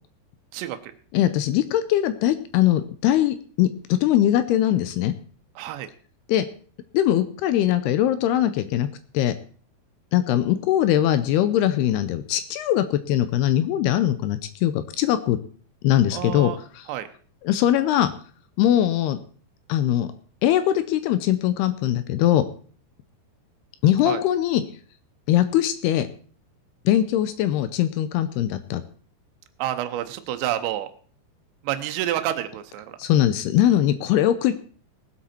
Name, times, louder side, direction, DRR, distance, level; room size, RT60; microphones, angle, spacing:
voice 1, 0.5-0.9 5.6-5.9 16.1-16.6 16.9-17.1 24.1-24.2 29.6-30.9 31.6-33.0, right 12 dB, 80° right, 8 dB, 3.1 m, -29 dB
voice 2, 1.1-5.1 6.3-6.5 6.9-8.9 9.1-9.3 10.1-15.4 15.8-16.9 17.4-18.1 18.6-19.2 19.7-20.1 20.4-22.4 23.8-24.6 25.3-26.1 26.9-28.8 33.0-34.5, left 12 dB, 80° left, 11 dB, 2.5 m, -21 dB
19.0 x 8.0 x 4.4 m, 0.43 s
omnidirectional pair, 5.1 m